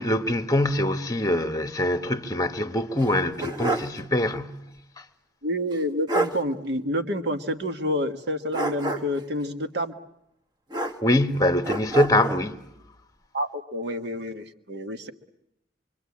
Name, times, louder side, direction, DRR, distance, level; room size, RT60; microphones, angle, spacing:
voice 1, 0.0-4.6 5.0-5.1 11.0-12.6, left 1 dB, 20° left, 1.2 m, -24 dB
sound 1, 3.0-4.0 4.3-4.4 5.7-5.8 6.1-6.4 8.5-9.3 10.7-11.3 11.6-12.5, right 2 dB, 20° right, 1.2 m, -28 dB
voice 2, 5.4-9.9 13.3-15.1, equal, 60° right, 1.6 m, -28 dB
25.0 x 25.0 x 8.6 m
head